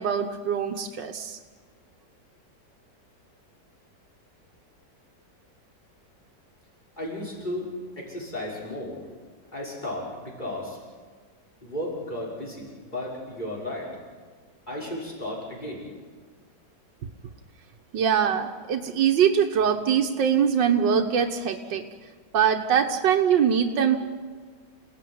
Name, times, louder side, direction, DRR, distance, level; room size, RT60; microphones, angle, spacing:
voice 1, 0.0-1.4 17.9-21.9 22.3-24.0, right 8 dB, 90° right, 4 dB, 1.9 m, -23 dB
voice 2, 7.0-9.0 9.5-10.8 11.6-13.9 14.7-15.9, left 1 dB, 25° left, -3 dB, 6.1 m, -34 dB
29.0 x 18.0 x 9.5 m, 1.5 s
omnidirectional pair, 1.9 m